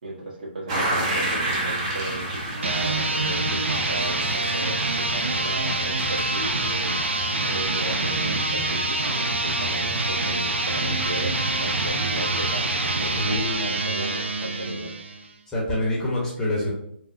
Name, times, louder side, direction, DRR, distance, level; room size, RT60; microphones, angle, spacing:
voice 1, 0.0-6.9 7.4-14.9, right 1 dB, 50° right, -4 dB, 1.2 m, -35 dB
sound 1, 0.7-13.2, right 1 dB, 30° right, 0.7 m, -32 dB
sound 2, 2.5-15.3, right 2 dB, 85° right, 0.5 m, -26 dB
voice 2, 13.2-13.8 15.5-16.7, left 1 dB, 10° left, -6 dB, 0.8 m, -26 dB
3.3 x 2.1 x 2.6 m, 0.71 s
figure-of-eight pair, 145°, 6 cm